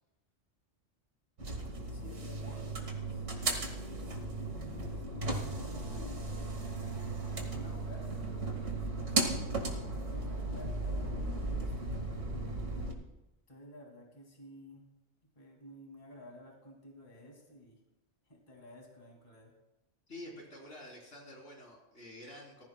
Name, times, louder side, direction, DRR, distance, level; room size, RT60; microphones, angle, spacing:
sound 1, 1.4-12.9, right 2 dB, 85° right, 2.2 m, -36 dB
voice 1, 1.9-3.3 4.0-6.6 7.3-8.6 8.9-12.6 13.5-14.8 15.4-17.8 18.3-19.5, equal, 30° left, 0 dB, 2.4 m, -53 dB
voice 2, 20.1-22.6, left 1 dB, 80° left, -2 dB, 3.7 m, -48 dB
19.0 x 14.5 x 2.2 m, 0.98 s
omnidirectional pair, 1.2 m